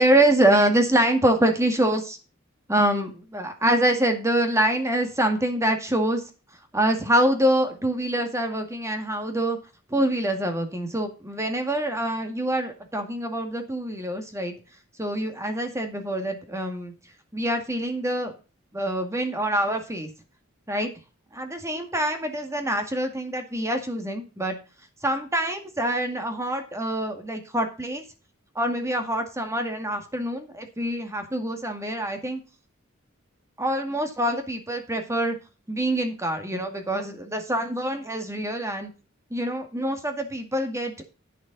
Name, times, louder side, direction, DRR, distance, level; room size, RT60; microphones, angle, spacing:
voice 1, 0.0-2.2 2.7-6.2 6.7-9.6 9.9-14.6 15.0-16.9 17.3-18.3 18.7-20.1 20.7-20.9 21.3-24.6 25.0-28.0 28.6-32.4 33.6-35.4 35.7-38.9 39.3-40.9, right 1 dB, 15° right, 6 dB, 2.0 m, -25 dB
11.0 x 8.7 x 4.0 m, 0.33 s
head